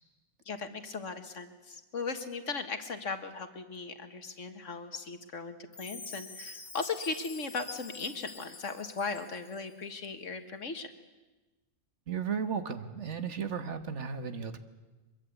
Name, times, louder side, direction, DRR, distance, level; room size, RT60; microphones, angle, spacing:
voice 1, 0.5-10.9, left 4 dB, 75° left, 8 dB, 2.0 m, -38 dB
Chime, 5.7-9.7, left 4 dB, 45° left, 1.8 m, -46 dB
voice 2, 12.1-14.6, right 6 dB, 65° right, 9 dB, 1.6 m, -35 dB
24.0 x 22.5 x 8.3 m, 1.2 s
omnidirectional pair, 1.3 m